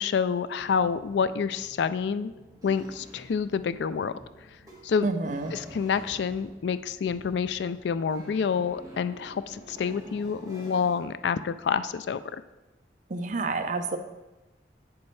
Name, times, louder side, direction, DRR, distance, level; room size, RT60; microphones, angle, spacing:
voice 1, 0.0-2.3 2.6-4.1 4.8-5.1 5.5-12.4, left 6 dB, 75° left, 14 dB, 0.3 m, -28 dB
sound 1, 0.6-11.1, equal, 20° right, 1.6 m, -49 dB
voice 2, 5.0-5.5 13.1-14.0, right 3 dB, 45° right, 8 dB, 0.5 m, -29 dB
8.4 x 7.0 x 3.2 m, 1.1 s
head